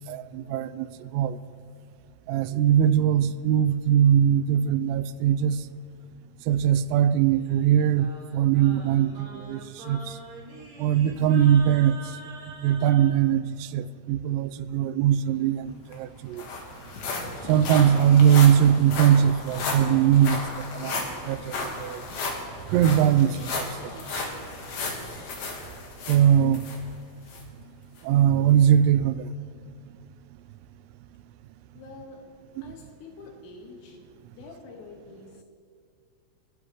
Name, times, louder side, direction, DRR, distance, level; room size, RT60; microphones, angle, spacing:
voice 1, 0.1-1.4 2.3-5.6 6.5-10.2 10.8-12.0 12.6-16.4 17.5-20.4 20.7-22.0 22.7-23.7 24.0-24.3 26.1-26.6 28.0-29.3, right 9 dB, 85° right, 3.2 m, -21 dB
Singing, 7.1-13.2, right 3 dB, 50° right, 3.5 m, -44 dB
sound 1, 15.6-15.7 15.9-26.8 27.3-27.4 28.0-28.1, left 3 dB, 60° left, 3.0 m, -34 dB
voice 2, 31.7-32.2 32.6-34.0 34.3-35.4, left 4 dB, 90° left, 4.4 m, -46 dB
29.5 x 11.5 x 3.2 m
omnidirectional pair, 5.8 m